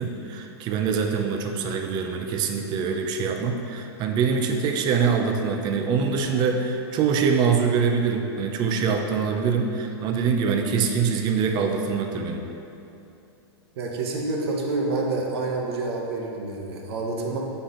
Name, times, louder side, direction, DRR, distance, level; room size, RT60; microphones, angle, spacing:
voice 1, 0.0-12.5, right 6 dB, 30° right, 4 dB, 0.6 m, -24 dB
voice 2, 13.8-17.4, right 3 dB, 65° right, 0 dB, 1.1 m, -28 dB
6.7 x 4.4 x 3.8 m, 2.7 s
hypercardioid pair, 140°, 14 cm